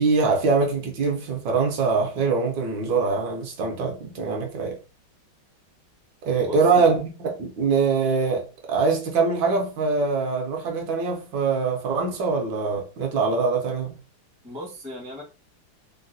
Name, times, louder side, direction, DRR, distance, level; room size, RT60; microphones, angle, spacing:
voice 1, 0.0-4.8 6.2-13.9, right 4 dB, 70° right, 1.2 m, -23 dB
voice 2, 6.5-6.8 14.4-15.2, left 1 dB, 10° right, 0.4 m, -37 dB
3.8 x 2.1 x 2.5 m
omnidirectional pair, 2.2 m